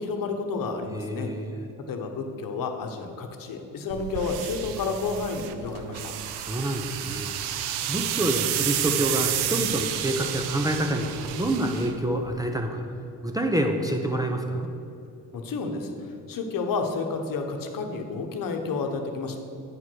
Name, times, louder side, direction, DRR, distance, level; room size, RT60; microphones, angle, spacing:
voice 1, 0.0-1.3 1.9-6.1 15.3-19.4, left 4 dB, 55° left, 4 dB, 1.0 m, -31 dB
voice 2, 0.9-1.6 6.4-7.3 7.9-11.1 11.4-12.8 13.2-14.7, right 1 dB, 10° right, 3 dB, 0.6 m, -27 dB
sound 1, 3.9-12.5, right 10 dB, 75° right, 0.6 m, -31 dB
8.4 x 4.7 x 6.1 m, 2.7 s
cardioid pair, 85°, 39 cm